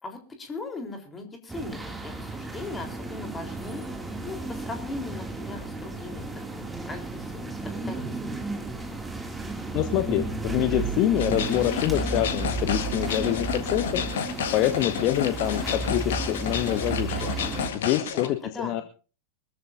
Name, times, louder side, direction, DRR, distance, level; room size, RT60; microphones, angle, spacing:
voice 1, 0.0-3.8 4.2-7.6 7.8-9.0 18.1-18.8, left 3 dB, 15° left, 4 dB, 3.9 m, -39 dB
sound 1, 1.5-17.7, right 3 dB, 10° right, 2.5 m, -33 dB
voice 2, 9.7-17.3 17.7-18.8, left 14 dB, 40° left, 9 dB, 1.1 m, -26 dB
sound 2, 11.2-18.3, left 7 dB, 60° left, 1.8 m, -31 dB
24.0 x 14.0 x 2.7 m, 0.36 s
figure-of-eight pair, 90°, 0 cm